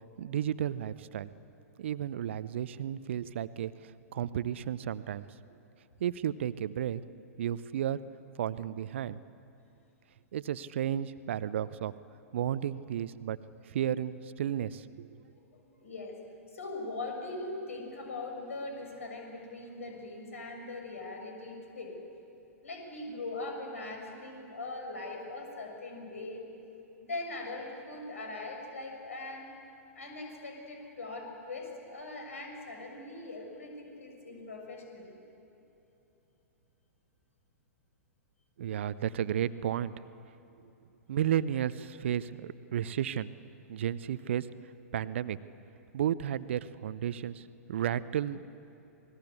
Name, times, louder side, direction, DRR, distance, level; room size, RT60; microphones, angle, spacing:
voice 1, 0.2-1.3 1.8-5.3 6.0-7.0 7.4-8.0 8.4-9.2 10.3-11.9 12.3-13.4 13.7-15.1 38.6-39.9 41.1-43.3 43.7-44.5 44.9-45.4 45.9-48.4, right 10 dB, 50° right, 16 dB, 0.7 m, -33 dB
voice 2, 15.8-16.1 16.5-22.0 22.6-26.4 27.0-29.5 29.9-35.2, left 2 dB, 65° left, 2 dB, 6.7 m, -41 dB
27.0 x 20.5 x 8.4 m, 3.0 s
figure-of-eight pair, 105°, 8 cm